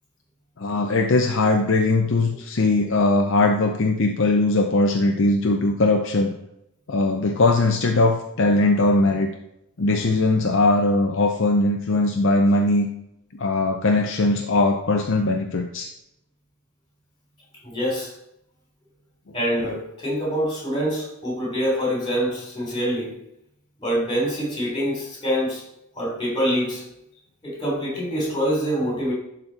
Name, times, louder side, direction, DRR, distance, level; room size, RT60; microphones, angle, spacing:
voice 1, 0.6-6.3 6.9-9.3 9.8-12.9 13.3-15.9, left 2 dB, 60° left, 3 dB, 0.6 m, -20 dB
voice 2, 17.6-18.1 19.3-23.1 23.8-25.6 25.9-26.8 27.4-29.1, equal, 20° left, -3 dB, 3.3 m, -25 dB
11.5 x 4.1 x 4.1 m, 0.81 s
head